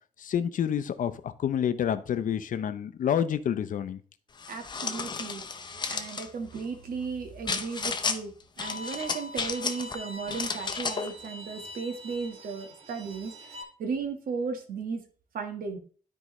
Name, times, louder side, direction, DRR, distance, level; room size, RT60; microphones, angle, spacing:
voice 1, 0.2-4.0, left 9 dB, 65° left, 11 dB, 0.7 m, -28 dB
sound 1, 4.4-6.3 7.5-8.2 8.6-10.0 10.3-11.1, left 5 dB, 30° left, 0.7 m, -33 dB
voice 2, 4.5-5.4 5.9-15.0 15.3-15.8, right 5 dB, 80° right, 6 dB, 1.4 m, -35 dB
Bowed string instrument, 8.6-13.6, left 1 dB, 45° right, 1.1 m, -43 dB
12.5 x 4.7 x 3.1 m, 0.42 s
wide cardioid pair, 165°, 15 cm